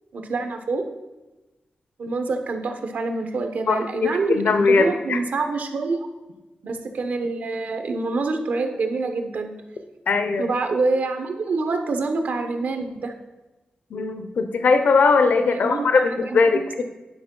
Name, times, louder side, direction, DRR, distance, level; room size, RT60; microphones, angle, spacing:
voice 1, 0.1-0.9 2.0-4.4 4.7-6.1 6.6-9.5 10.4-13.1 15.6-16.4, right 3 dB, 65° right, 6 dB, 1.1 m, -26 dB
voice 2, 3.7-5.2 10.1-10.5 13.9-16.8, left 4 dB, 70° left, 8 dB, 0.8 m, -20 dB
10.5 x 5.3 x 5.4 m, 1.1 s
wide cardioid pair, 145°, 3 cm